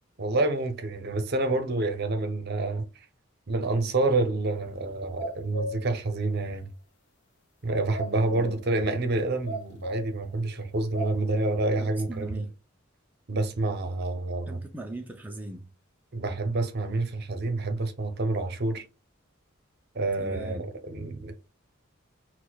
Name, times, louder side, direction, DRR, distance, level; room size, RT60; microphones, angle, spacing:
voice 1, 0.2-2.9 3.5-6.7 7.6-12.4 13.3-14.6 16.1-18.9 19.9-21.3, right 2 dB, 50° right, 0.6 m, -28 dB
sound 1, 4.9-5.9 6.3-6.4 7.9-8.6 9.5-10.3 10.6-10.7 10.9-11.8 12.0-12.2, equal, 60° left, 0.7 m, -36 dB
voice 2, 8.3-8.6 11.8-12.5 14.5-15.7 20.2-20.7, right 1 dB, 10° right, 0.3 m, -39 dB
6.2 x 2.1 x 2.3 m
head